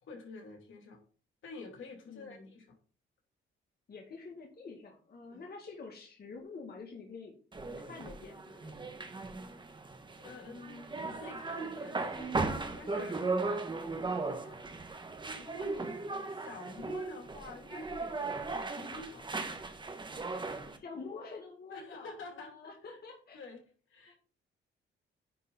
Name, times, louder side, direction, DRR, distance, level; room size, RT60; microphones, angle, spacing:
voice 1, 0.0-1.0 1.4-2.8 5.3-5.4 10.2-13.3 14.0-14.6 15.3-19.3 21.7-22.5 22.8-23.0 23.3-23.6 23.9-24.1, left 3 dB, 75° left, 1 dB, 2.9 m, -48 dB
voice 2, 2.0-2.5 3.9-7.3 7.9-8.8 20.7-23.4 24.1-24.2, left 4 dB, 50° left, 0 dB, 2.1 m, -47 dB
sound 1, 7.5-20.8, right 3 dB, 25° right, 1.2 m, -37 dB
9.9 x 3.8 x 5.5 m, 0.40 s
cardioid pair, 90°, 20 cm